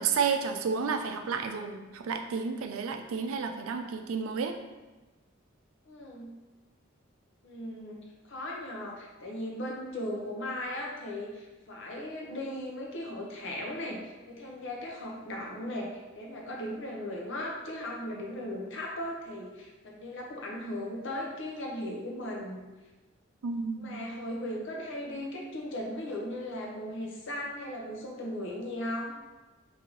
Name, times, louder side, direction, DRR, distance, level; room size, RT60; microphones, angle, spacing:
voice 1, 0.0-4.5 23.4-24.0, right 5 dB, 85° right, 6 dB, 0.4 m, -31 dB
voice 2, 5.9-6.4 7.4-22.6 23.8-29.1, left 1 dB, 65° left, -1 dB, 0.7 m, -37 dB
3.9 x 2.7 x 3.0 m, 1.2 s
head